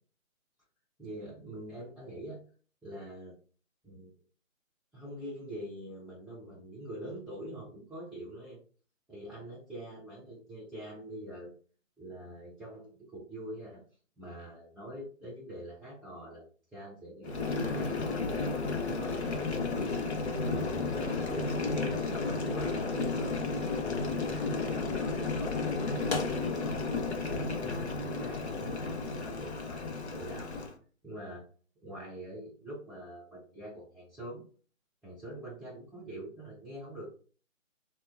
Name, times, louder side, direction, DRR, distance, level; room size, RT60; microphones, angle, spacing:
voice 1, 1.0-2.4 2.8-3.3 3.8-4.1 4.9-8.6 9.1-11.5 12.0-13.8 14.2-16.4 16.7-17.4 17.7-23.8 24.3-26.8 27.2-30.5 31.0-31.4 31.8-34.4 35.0-37.1, right 1 dB, ahead, -10 dB, 0.4 m, -44 dB
Boiling, 17.2-30.7, left 3 dB, 55° left, 0.6 m, -33 dB
2.9 x 2.2 x 2.3 m, 0.40 s
hypercardioid pair, 175°, 40 cm